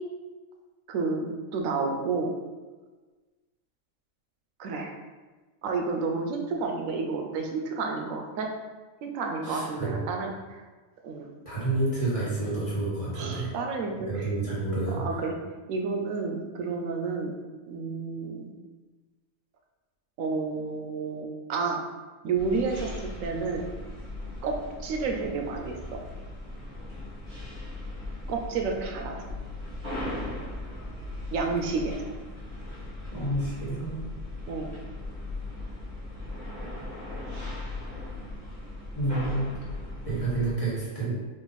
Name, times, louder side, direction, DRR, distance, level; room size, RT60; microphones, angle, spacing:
voice 1, 0.9-2.3 4.6-4.9 5.6-8.5 9.0-10.6 11.0-11.3 13.2-14.6 15.0-15.4 15.7-17.3 17.7-18.5 20.2-21.8 22.2-23.6 24.4-25.8 28.3-29.2 31.3-32.1 34.5-34.7, right 4 dB, 85° right, 2 dB, 1.0 m, -30 dB
voice 2, 9.4-10.0 11.4-13.5 14.1-15.2 33.2-34.0 38.9-39.5 40.0-41.1, right 2 dB, 25° left, -8 dB, 1.3 m, -29 dB
sound 1, 22.4-40.5, left 2 dB, 35° right, 1.3 m, -38 dB
3.9 x 2.5 x 4.0 m, 1.3 s
omnidirectional pair, 1.4 m